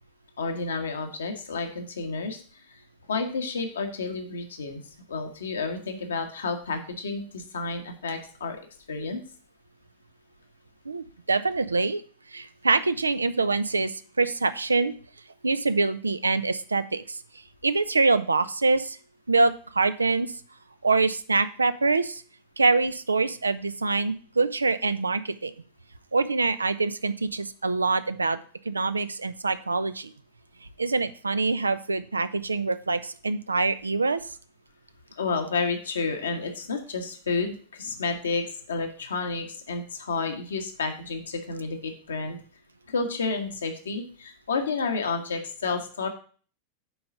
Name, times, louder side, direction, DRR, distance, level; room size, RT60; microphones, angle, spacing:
voice 1, 0.4-2.4 2.7-2.8 3.1-4.8 5.1-8.6 8.9-9.2 35.2-42.4 42.9-46.1, left 4 dB, 70° left, 4 dB, 1.4 m, -30 dB
voice 2, 10.9-12.0 12.3-14.9 15.4-17.2 17.6-19.0 19.3-20.3 20.8-22.2 22.6-25.5 26.1-28.4 28.7-30.1 30.8-34.2, right 3 dB, 80° right, 13 dB, 0.5 m, -25 dB
7.0 x 4.9 x 6.6 m, 0.41 s
figure-of-eight pair, 90°, 0 cm